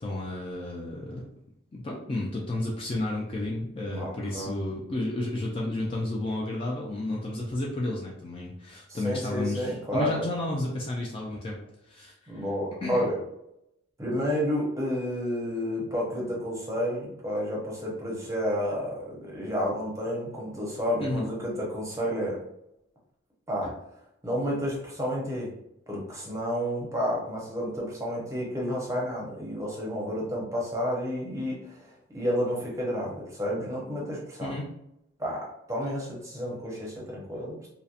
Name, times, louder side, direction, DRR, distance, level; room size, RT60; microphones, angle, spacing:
voice 1, 0.0-1.3 1.7-11.6 11.8-12.4 12.8-13.1 21.0-21.3 23.6-23.7 34.4-34.7, left 1 dB, 25° left, -3 dB, 0.3 m, -32 dB
voice 2, 3.9-4.5 8.9-10.2 12.3-13.2 14.0-22.4 23.5-23.7 24.2-25.5 25.9-34.5 35.2-37.7, equal, 15° right, -4 dB, 0.6 m, -31 dB
2.7 x 2.0 x 2.4 m, 0.82 s
head